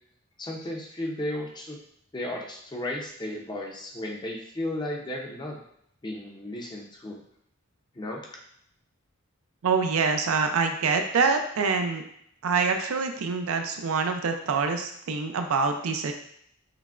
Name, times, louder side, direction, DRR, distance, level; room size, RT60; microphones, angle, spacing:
voice 1, 0.4-1.8 2.1-5.6 6.0-7.2 8.0-8.2, left 1 dB, 20° left, 0 dB, 0.5 m, -34 dB
voice 2, 9.6-12.0 12.4-16.1, right 4 dB, 70° right, 6 dB, 0.4 m, -25 dB
5.7 x 2.1 x 2.4 m, 0.71 s
head